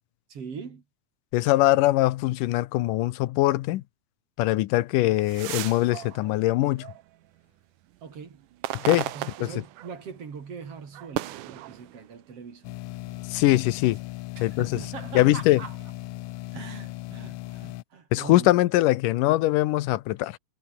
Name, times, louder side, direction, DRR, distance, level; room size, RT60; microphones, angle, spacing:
voice 1, 0.3-0.8 8.0-8.5 9.1-12.7 14.4-15.9 16.5-18.5, right 6 dB, 50° right, 3.9 m, -41 dB
voice 2, 1.3-3.8 4.4-6.9 8.7-9.1 9.4-9.5 13.3-14.0 14.4-14.7 15.1-15.6 18.1-20.4, left 17 dB, 90° left, 2.5 m, -22 dB
sound 1, 5.0-7.4 7.9-10.2 10.5-12.4 13.1-14.0, right 15 dB, 80° right, 2.5 m, -36 dB
sound 2, 12.6-17.8, left 17 dB, 75° left, 1.9 m, -37 dB
omnidirectional pair, 3.6 m